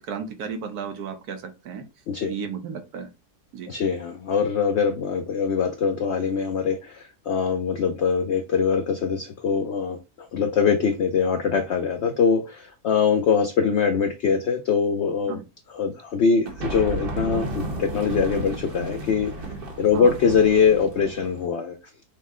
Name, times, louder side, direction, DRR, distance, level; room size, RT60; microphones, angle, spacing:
voice 1, 0.0-1.8 2.3-3.1 3.5-3.7 15.3-15.5 19.9-20.1, right 6 dB, 70° right, 1.3 m, -34 dB
voice 2, 3.7-15.4 15.7-19.3 19.8-21.8, left 6 dB, 85° left, 0.6 m, -23 dB
sound 1, 16.4-21.5, right 2 dB, 40° right, 1.0 m, -32 dB
5.4 x 2.1 x 3.6 m
omnidirectional pair, 1.7 m